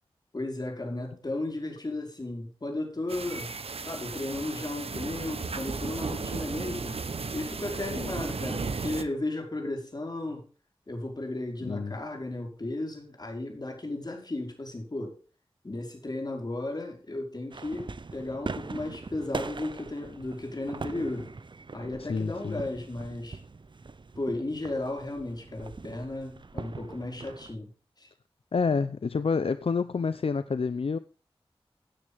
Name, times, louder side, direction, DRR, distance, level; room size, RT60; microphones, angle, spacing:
voice 1, 0.3-3.5 3.8-7.0 7.3-10.5 10.9-15.2 15.6-21.3 21.7-23.4 24.2-27.7 28.0-28.1, left 2 dB, 45° left, 5.2 m, -34 dB
sound 1, 3.1-9.0, right 4 dB, 85° right, 1.3 m, -35 dB
voice 2, 11.6-11.9 22.1-22.6 28.5-31.0, left 5 dB, 75° left, 0.7 m, -28 dB
sound 2, 17.5-27.6, right 4 dB, 55° right, 0.8 m, -41 dB
16.0 x 9.8 x 3.5 m
wide cardioid pair, 75°, 10 cm